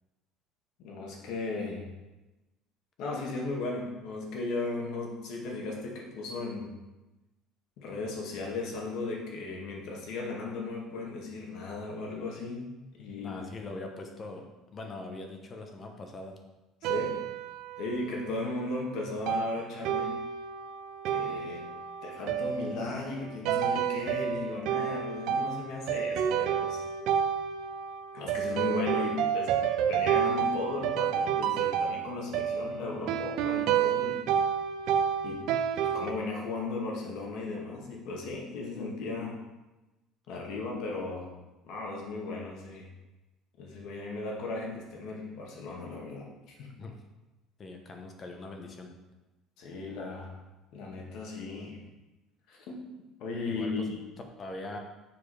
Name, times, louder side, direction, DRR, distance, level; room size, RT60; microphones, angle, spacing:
voice 1, 0.8-1.9 3.0-6.7 7.8-12.7 13.0-13.5 16.8-17.2 17.8-20.2 21.1-21.6 22.0-26.8 28.1-29.6 29.9-34.3 35.2-35.5 35.8-39.4 40.3-41.3 41.6-42.9 43.6-46.7 49.6-50.4 50.7-51.8 52.5-52.8 53.2-54.0, left 3 dB, 65° left, -1 dB, 1.8 m, -36 dB
voice 2, 13.2-14.5 14.7-16.4 46.8-46.9 47.6-48.9 53.5-53.9 54.4-54.8, left 2 dB, 30° left, 3 dB, 1.0 m, -41 dB
sound 1, 16.8-18.4 19.3-36.1, right 8 dB, 70° right, 0.5 m, -30 dB
7.1 x 4.8 x 4.9 m, 1.1 s
cardioid pair, 135°, 0 cm